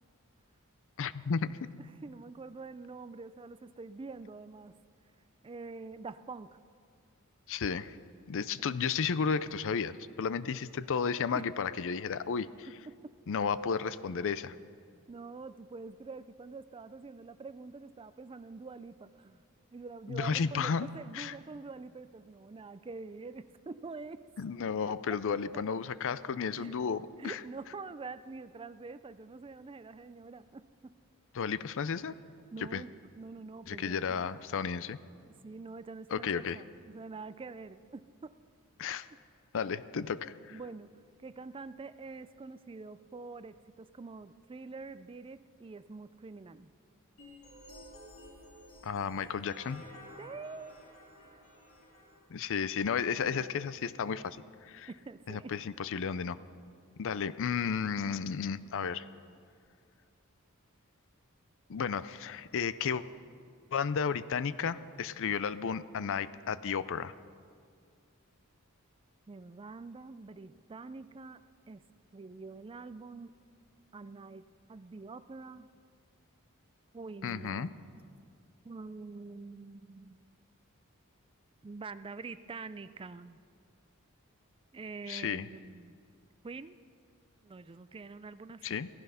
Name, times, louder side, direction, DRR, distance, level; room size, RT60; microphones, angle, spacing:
voice 1, 1.0-1.7 7.5-8.0 8.3-12.7 13.3-14.5 20.1-20.9 21.1-21.4 24.4-27.4 31.3-32.2 32.7-32.8 33.7-35.0 36.1-36.6 38.8-39.1 39.5-40.6 48.8-49.8 52.3-54.9 55.3-56.4 57.0-59.0 61.7-63.0 63.7-67.1 77.2-77.7 85.1-85.5 88.6-88.9, left 6 dB, 60° left, 16 dB, 0.5 m, -33 dB
voice 2, 1.8-4.8 5.4-6.6 11.3-11.5 12.7-12.8 15.1-19.4 19.7-24.3 24.9-25.2 26.5-26.8 27.2-31.0 32.5-34.3 35.3-38.4 39.1-39.2 40.5-40.9 41.2-46.7 50.2-50.8 54.9-55.6 69.3-71.8 72.1-73.4 73.9-75.7 76.9-77.8 78.6-80.2 81.6-83.4 84.7-86.0 86.4-86.8 87.4-88.8, right 4 dB, 25° right, 14 dB, 0.4 m, -46 dB
sound 1, 47.2-52.2, equal, 85° left, 4.5 m, -52 dB
16.5 x 14.5 x 5.7 m, 2.2 s
head